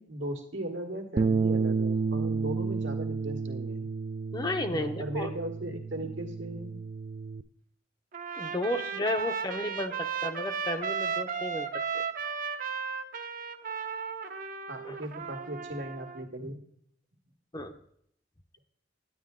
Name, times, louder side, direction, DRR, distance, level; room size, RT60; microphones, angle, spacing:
voice 1, 0.0-3.8 4.7-6.7 14.7-16.6, right 1 dB, 85° right, 3 dB, 1.5 m, -37 dB
Bass guitar, 1.2-7.4, right 4 dB, 35° right, 0.3 m, -31 dB
voice 2, 4.3-5.3 8.4-11.7 11.9-12.0 14.8-15.0 17.5-17.7, left 1 dB, 25° left, 8 dB, 0.6 m, -33 dB
Trumpet, 8.1-16.3, right 6 dB, 50° right, 0.7 m, -35 dB
9.7 x 9.6 x 3.7 m, 0.66 s
head